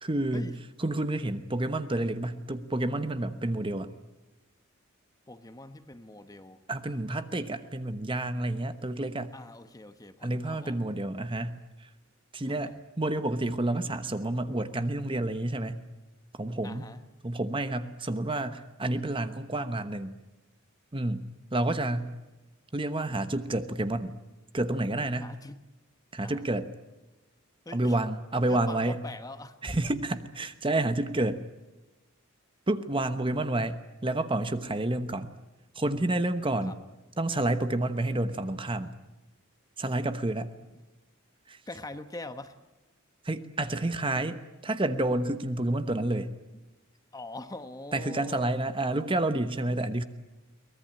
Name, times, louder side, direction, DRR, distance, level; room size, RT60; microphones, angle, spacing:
voice 1, 0.0-0.5 0.8-3.9 6.7-9.3 10.2-11.9 12.3-15.8 16.3-16.9 17.2-20.1 20.9-21.2 21.5-22.1 22.7-24.1 24.5-25.3 26.1-26.7 27.7-29.0 29.6-31.4 32.7-35.3 35.7-36.8 37.2-38.9 39.8-40.5 41.5-41.6 43.2-46.3 47.9-50.0, right 2 dB, 25° right, 10 dB, 1.0 m, -29 dB
voice 2, 5.3-6.6 9.3-10.8 12.4-12.8 16.6-17.0 25.2-25.6 26.2-26.5 27.6-27.9 28.5-29.6 36.6-36.7 41.7-42.5 47.1-48.6, left 2 dB, 15° left, 10 dB, 1.0 m, -43 dB
23.0 x 19.5 x 8.9 m, 1.1 s
head